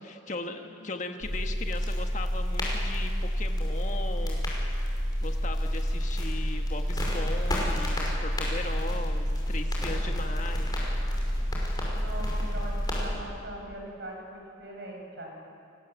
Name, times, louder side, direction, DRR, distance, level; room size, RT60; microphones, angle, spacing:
voice 1, 0.0-4.5 5.0-10.7, left 2 dB, 40° left, 5 dB, 1.4 m, -38 dB
sound 1, 1.2-13.1, equal, 20° left, 5.7 m, -29 dB
voice 2, 11.9-15.3, right 1 dB, 55° right, 0 dB, 6.7 m, -41 dB
30.0 x 20.0 x 8.2 m, 2.5 s
head